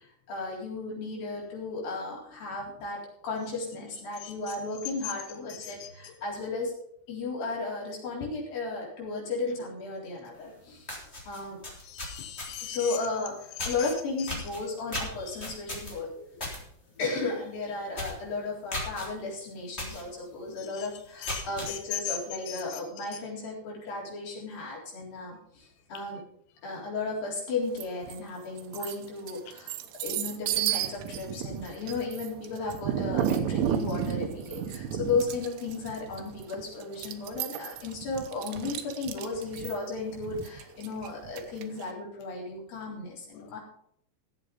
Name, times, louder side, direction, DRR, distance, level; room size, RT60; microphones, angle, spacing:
voice 1, 0.0-6.8 7.1-10.9 11.3-11.6 12.6-16.1 17.0-26.2 26.6-43.6, left 3 dB, 50° left, -4 dB, 5.5 m, -34 dB
voice 2, 4.2-4.6 5.0-5.1 5.5-6.2 8.2-8.3 10.9-11.1 11.8-13.0 13.6-14.3 16.1-16.5 20.1-20.3 20.6-20.9 21.2-22.2 22.5-23.2 43.3-43.6, left 12 dB, 70° left, 5 dB, 1.9 m, -40 dB
sound 1, 10.4-10.5 10.8-12.8 13.6-13.9 14.3-16.6 17.0-17.2 17.5-17.6 17.9-18.2 18.7-19.1 19.8-20.0 20.5-20.6 21.1-21.7, left 1 dB, 15° left, 3.1 m, -36 dB
sound 2, 27.8-28.2 28.6-41.8, right 9 dB, 90° right, 3.4 m, -33 dB
14.5 x 8.1 x 5.4 m, 0.68 s
omnidirectional pair, 5.3 m